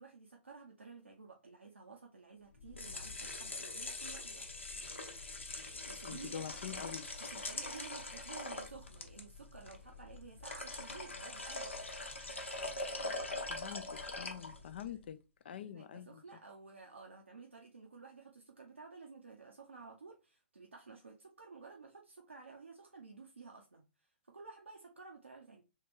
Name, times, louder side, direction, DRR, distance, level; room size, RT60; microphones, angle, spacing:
voice 1, 0.0-4.5 5.9-6.6 7.2-11.8 14.6-15.1 15.6-25.6, right 4 dB, 90° right, 0.7 m, -53 dB
sound 1, 2.6-14.9, left 2 dB, 85° left, 0.9 m, -43 dB
voice 2, 6.1-7.0 13.5-15.2 15.4-16.2, left 9 dB, 60° left, 0.3 m, -45 dB
3.3 x 3.2 x 3.3 m
figure-of-eight pair, 120°, 6 cm